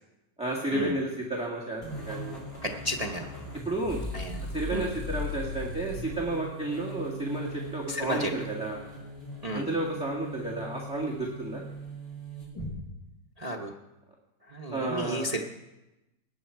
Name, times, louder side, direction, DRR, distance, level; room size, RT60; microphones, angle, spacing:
voice 1, 0.4-2.4 3.6-4.0 4.5-8.8 9.5-11.6 14.7-15.3, right 2 dB, 5° right, -4 dB, 1.8 m, -32 dB
sound 1, 1.8-12.7, left 1 dB, 15° left, 5.0 m, -39 dB
voice 2, 2.6-3.3 4.1-4.4 4.7-4.9 7.9-8.3 9.4-9.6 13.4-13.7 14.5-15.4, right 1 dB, 45° right, 0 dB, 0.4 m, -32 dB
19.0 x 9.3 x 4.6 m, 0.98 s
omnidirectional pair, 2.0 m